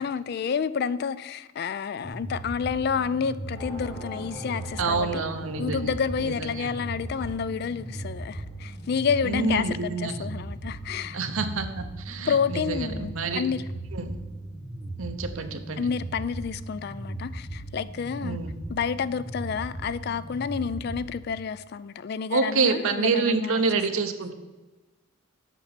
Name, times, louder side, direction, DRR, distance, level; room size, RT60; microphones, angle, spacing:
voice 1, 0.0-5.2 5.6-11.2 12.3-13.6 15.8-18.4 18.7-23.6, left 6 dB, 50° left, 0.3 m, -29 dB
sound 1, 2.0-21.1, right 1 dB, 5° right, 1.4 m, -37 dB
sound 2, 3.5-10.4, left 1 dB, 75° left, 2.6 m, -46 dB
voice 2, 4.8-5.9 6.2-6.7 9.2-10.3 11.1-13.4 13.9-14.2 15.0-15.9 18.2-18.6 22.3-24.3, right 4 dB, 80° right, 0.8 m, -27 dB
8.1 x 5.5 x 5.8 m
head